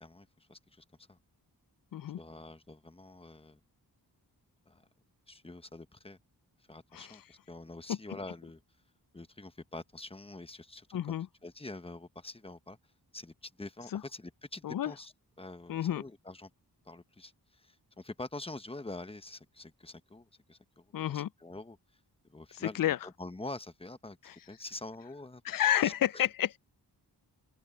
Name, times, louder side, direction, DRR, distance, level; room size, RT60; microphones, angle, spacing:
voice 1, 0.0-1.2 2.2-3.6 4.7-4.8 5.3-6.2 6.7-8.6 9.1-11.2 11.4-12.8 13.1-15.1 15.4-16.5 16.9-21.8 22.3-22.8 23.0-25.4 25.8-26.3, left 2 dB, 15° left, 1.0 m, -46 dB
voice 2, 10.9-11.3 13.9-14.0 14.6-14.9 15.7-16.0 20.9-21.3 22.5-23.0 24.2-24.4 25.4-26.6, left 11 dB, 55° left, 0.4 m, -30 dB
open air
wide cardioid pair, 85°, 40 cm